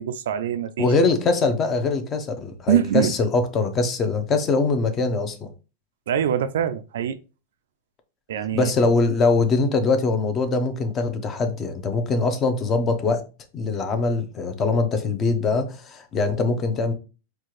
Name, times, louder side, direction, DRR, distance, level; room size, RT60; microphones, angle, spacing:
voice 1, 0.0-0.9 2.7-3.2 6.1-7.2 8.3-8.7, right 10 dB, 80° right, 0.3 m, -24 dB
voice 2, 0.8-5.5 8.5-13.2 13.5-16.9, left 3 dB, 25° left, 0.7 m, -22 dB
4.3 x 2.4 x 3.1 m
supercardioid pair, 140°, 0 cm